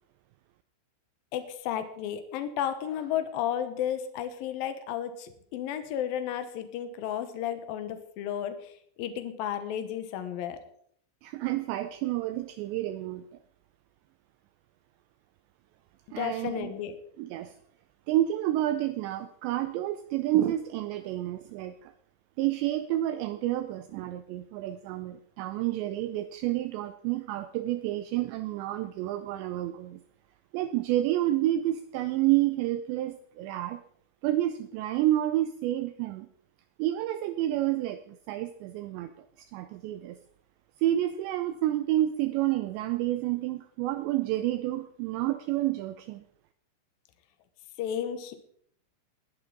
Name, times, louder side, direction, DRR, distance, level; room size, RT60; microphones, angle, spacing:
voice 1, 1.3-10.6 16.2-17.0 47.8-48.4, left 10 dB, 70° left, 9 dB, 2.3 m, -33 dB
voice 2, 11.2-13.2 16.1-16.7 17.2-17.5 18.1-21.9 22.4-30.0 30.5-33.8 34.2-36.3 36.8-39.1 39.4-40.2 40.8-46.2, right 14 dB, 80° right, 9 dB, 2.7 m, -29 dB
20.5 x 11.0 x 3.9 m, 0.66 s
omnidirectional pair, 5.4 m